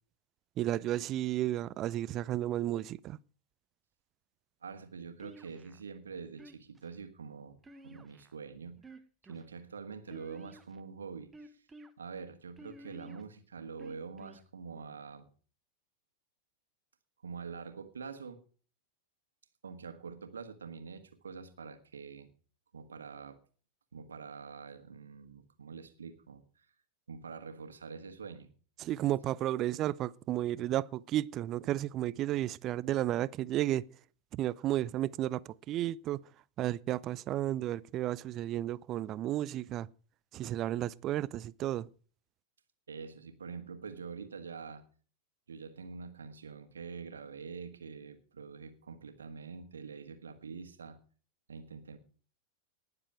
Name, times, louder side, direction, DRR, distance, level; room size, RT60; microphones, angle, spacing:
voice 1, 0.6-3.2 28.8-33.8 34.3-36.2 36.6-39.9 40.3-41.9, right 13 dB, 35° right, 0.5 m, -33 dB
voice 2, 4.6-7.6 7.8-8.8 9.3-11.6 12.0-15.3 17.2-18.4 19.6-22.3 22.7-23.4 23.9-26.7 27.1-28.5 42.9-44.8 45.5-51.0 51.5-52.0, right 5 dB, 70° right, 1.6 m, -45 dB
sound 1, 5.2-5.8 6.4-6.9 7.6-8.4 8.8-9.4 10.1-10.8 11.3-11.9 12.6-13.2 13.8-14.4, right 1 dB, 15° right, 1.2 m, -52 dB
19.0 x 6.9 x 4.7 m
figure-of-eight pair, 90°, 0 cm